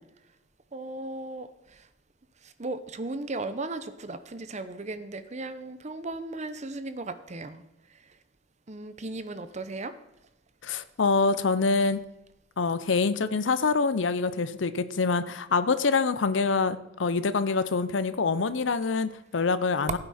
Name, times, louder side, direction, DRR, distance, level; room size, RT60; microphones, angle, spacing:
voice 1, 0.7-1.9 2.4-7.6 7.9-8.2 8.7-10.0, right 2 dB, 40° right, 11 dB, 0.9 m, -36 dB
voice 2, 10.6-12.0 12.6-20.0, left 4 dB, 85° left, 13 dB, 0.7 m, -25 dB
15.5 x 8.7 x 4.3 m, 0.92 s
head